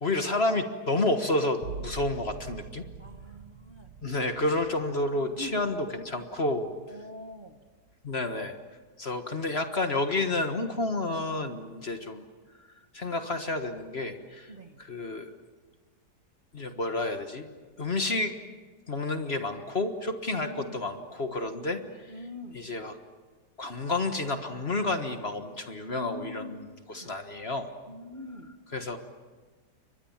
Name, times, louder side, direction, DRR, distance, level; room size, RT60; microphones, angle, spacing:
voice 1, 0.0-2.8 4.0-6.7 8.0-8.6 9.0-12.2 12.9-14.5 14.8-15.3 16.5-17.4 17.8-18.3 18.9-22.1 22.5-23.0 23.6-27.7 28.7-29.0, left 2 dB, 40° left, 7 dB, 1.6 m, -30 dB
sound 1, 1.6-7.1 7.5-8.1, right 5 dB, 80° right, 1.8 m, -45 dB
voice 2, 3.0-3.9 5.1-5.6 6.9-7.6 12.0-12.2 14.5-14.8 20.3-20.8 21.6-22.6 25.9-26.6 27.0-27.1 27.9-28.5, left 1 dB, 35° right, 6 dB, 1.4 m, -44 dB
30.0 x 24.0 x 7.3 m, 1.4 s
omnidirectional pair, 1.8 m